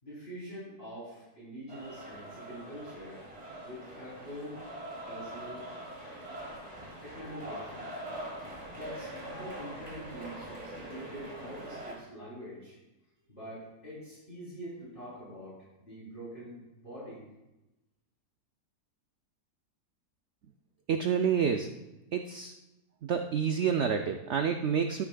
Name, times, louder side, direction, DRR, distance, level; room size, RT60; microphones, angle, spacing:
voice 1, 0.0-3.2 3.6-4.6 5.1-5.7 7.0-8.0 8.7-12.8 13.3-17.2, equal, 30° left, -9 dB, 3.5 m, -45 dB
sound 1, 1.7-11.9, right 1 dB, 25° right, 1.9 m, -43 dB
voice 2, 20.9-21.7 22.1-22.5 23.0-25.0, right 7 dB, 80° right, 6 dB, 0.6 m, -28 dB
12.5 x 9.9 x 2.2 m, 0.97 s
omnidirectional pair, 1.7 m